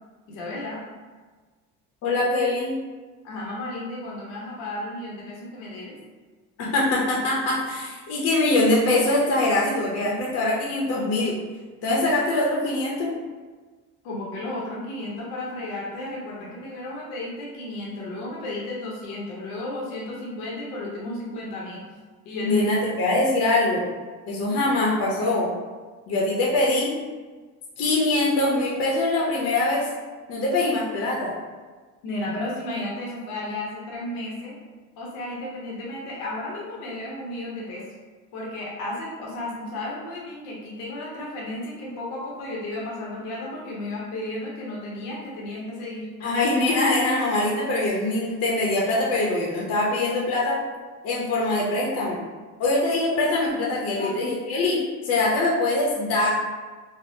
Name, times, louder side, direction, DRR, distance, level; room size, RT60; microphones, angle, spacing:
voice 1, 0.3-0.8 3.2-6.0 14.0-21.8 22.3-22.7 32.0-34.5 35.0-37.8 38.3-46.1 46.9-47.1 53.6-54.1, left 1 dB, 85° left, -4 dB, 0.8 m, -33 dB
voice 2, 2.0-2.8 6.6-11.4 11.8-13.1 22.4-23.8 24.3-25.5 26.1-26.9 27.8-29.9 30.3-31.3 46.2-50.6 51.0-52.2 52.6-54.8 55.0-56.3, left 2 dB, 50° left, -4 dB, 0.6 m, -23 dB
3.4 x 2.0 x 2.6 m, 1.4 s
cardioid pair, 135°, 33 cm